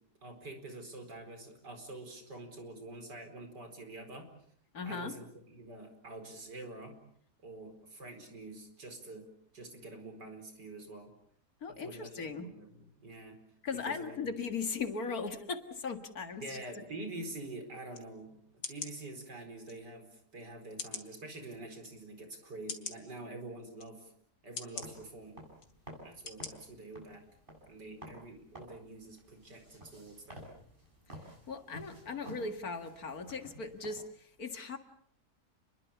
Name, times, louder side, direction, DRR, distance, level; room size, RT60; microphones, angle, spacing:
voice 1, 0.2-4.3 4.8-7.0 7.4-9.3 9.5-11.1 11.7-13.4 13.9-14.4 16.4-18.4 18.7-24.1 24.4-25.4 26.0-27.2 27.6-30.4, right 2 dB, 85° right, 6 dB, 5.2 m, -46 dB
voice 2, 4.7-5.2 11.6-12.5 13.6-16.8 31.5-34.8, left 4 dB, 60° left, 8 dB, 2.3 m, -38 dB
sound 1, 17.9-18.1 18.6-18.9 19.7-19.8 20.8-21.1 21.8-21.9 22.7-23.0 23.8-23.9 24.6-24.9 25.6-25.7 26.3-26.5 26.9-27.0, left 4 dB, 80° left, 3.2 m, -41 dB
sound 2, 24.7-34.0, equal, 30° right, 7.8 m, -52 dB
29.5 x 22.0 x 7.2 m, 0.64 s
omnidirectional pair, 1.8 m